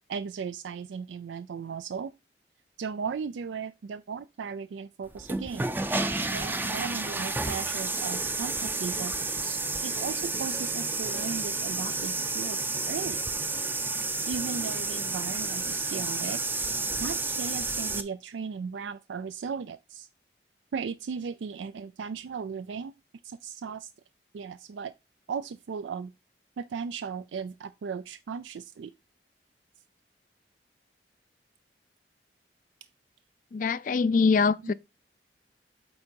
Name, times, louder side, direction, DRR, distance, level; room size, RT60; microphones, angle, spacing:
voice 1, 0.0-2.1 2.8-5.7 6.3-9.1 9.4-13.2 14.3-16.4 17.0-20.1 20.7-22.9 23.2-23.9 24.3-24.9 25.3-26.1 26.6-28.9 34.6-34.7, right 6 dB, 85° right, 0.4 m, -36 dB
sound 1, 5.1-18.0, right 3 dB, 10° right, 0.5 m, -31 dB
voice 2, 33.5-34.7, left 4 dB, 45° left, 0.4 m, -23 dB
8.6 x 3.8 x 4.5 m
head